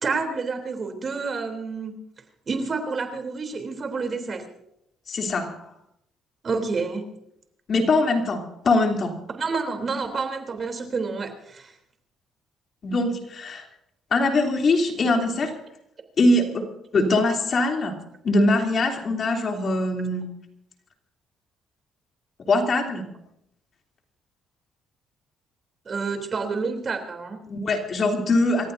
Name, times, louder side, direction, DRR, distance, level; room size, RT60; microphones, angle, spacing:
voice 1, 0.0-1.9 2.5-4.4 6.4-7.0 9.4-11.7 25.8-27.4, right 4 dB, 40° right, 5 dB, 3.4 m, -29 dB
voice 2, 5.1-5.7 7.7-9.1 12.8-13.7 14.1-15.6 16.2-16.6 16.9-20.3 22.5-23.1 27.5-28.7, left 2 dB, 45° left, 2 dB, 3.2 m, -22 dB
28.0 x 15.0 x 2.7 m, 0.77 s
cardioid pair, 90°, 0 cm